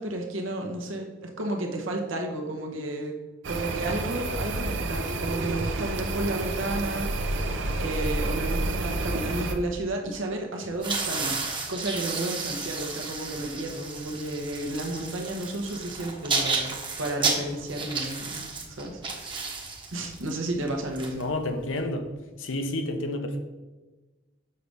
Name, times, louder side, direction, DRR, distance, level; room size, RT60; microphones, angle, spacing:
voice 1, 0.0-3.2 3.5-18.5 18.8-19.6 19.9-21.2, right 1 dB, 85° right, 2 dB, 1.0 m, -32 dB
sound 1, 3.4-9.5, right 2 dB, 65° right, 0.6 m, -29 dB
sound 2, 10.7-21.8, right 4 dB, 25° right, 0.9 m, -32 dB
voice 2, 21.2-22.1 22.4-23.4, left 1 dB, 75° left, 6 dB, 0.8 m, -30 dB
6.7 x 5.2 x 3.4 m, 1.2 s
head